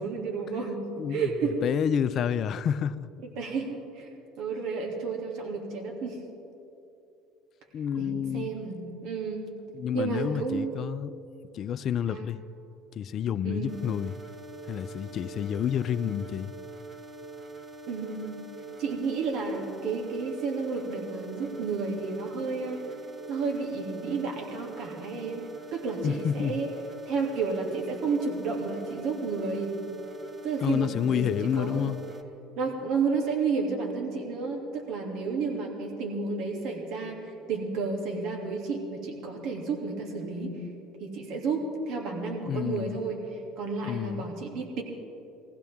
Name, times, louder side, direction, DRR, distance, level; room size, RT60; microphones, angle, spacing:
voice 1, 0.0-1.5 3.4-4.1 4.4-6.2 8.0-9.5 9.9-10.8 12.1-12.3 13.4-13.7 17.9-18.4 18.8-22.8 23.3-25.4 25.7-26.7 27.1-29.8 30.4-31.9 32.6-40.7 41.0-44.8, right 4 dB, 65° right, 2.6 m, -31 dB
voice 2, 1.0-3.1 7.7-8.5 9.7-11.2 11.5-12.4 12.9-14.1 14.7-16.5 26.0-26.6 30.6-32.0 42.5-43.0 43.8-44.3, left 9 dB, 50° left, 0.5 m, -29 dB
sound 1, 13.7-32.2, right 3 dB, 30° right, 1.3 m, -44 dB
20.5 x 15.5 x 3.6 m
supercardioid pair, 85°, 0 cm